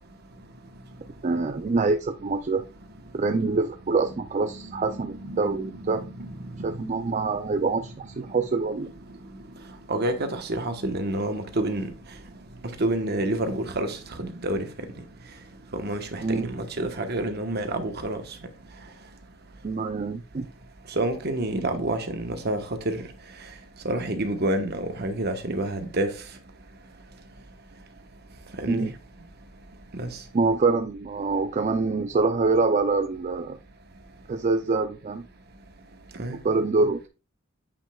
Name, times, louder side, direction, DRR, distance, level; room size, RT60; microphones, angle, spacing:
voice 1, 1.2-2.6 3.2-6.0 6.6-8.9 16.2-16.5 19.6-20.5 28.7-28.9 30.3-33.6 34.3-35.2 36.3-37.1, right 3 dB, 35° right, 0.4 m, -25 dB
voice 2, 4.6-7.0 9.9-11.9 12.8-14.7 15.7-18.2 21.0-22.6 22.8-23.0 23.8-26.1 28.6-28.9 29.9-30.1 36.2-36.4, right 1 dB, 55° right, 1.1 m, -28 dB
8.7 x 5.3 x 2.3 m
head